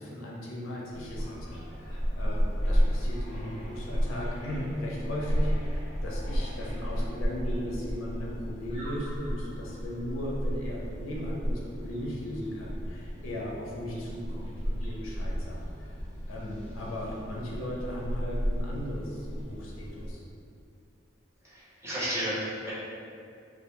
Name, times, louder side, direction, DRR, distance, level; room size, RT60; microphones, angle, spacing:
voice 1, 0.0-16.0 16.3-20.2, left 1 dB, 80° left, -3 dB, 0.5 m, -37 dB
sound 1, 0.9-20.1, equal, 35° left, 0.6 m, -33 dB
voice 2, 21.4-22.7, equal, 15° right, -10 dB, 0.6 m, -33 dB
2.2 x 2.1 x 2.9 m, 2.4 s
head